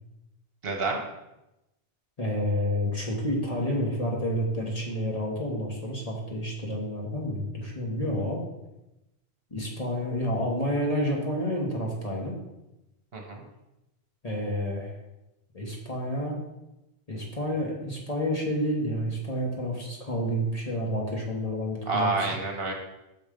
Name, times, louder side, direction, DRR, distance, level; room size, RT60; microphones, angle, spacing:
voice 1, 0.6-1.0 13.1-13.4 21.9-22.7, right 3 dB, 60° right, 1 dB, 1.2 m, -28 dB
voice 2, 2.2-8.4 9.5-12.4 14.2-14.9 15.5-16.4 17.1-22.4, equal, 35° left, -1 dB, 1.3 m, -29 dB
5.8 x 4.3 x 5.0 m, 0.93 s
omnidirectional pair, 1.2 m